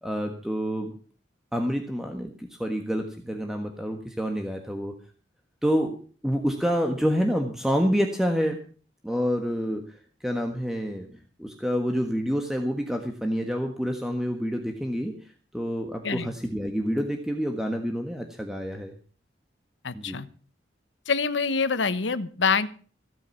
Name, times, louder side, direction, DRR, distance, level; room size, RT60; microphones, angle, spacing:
voice 1, 0.0-0.9 1.5-4.9 5.6-6.0 6.2-8.6 9.0-10.0 10.2-11.1 11.4-15.1 15.5-18.9 19.9-20.2, equal, 5° right, 3 dB, 1.4 m, -28 dB
voice 2, 19.8-20.3 21.1-22.7, left 5 dB, 85° left, 14 dB, 1.1 m, -25 dB
15.5 x 8.9 x 7.1 m, 0.41 s
head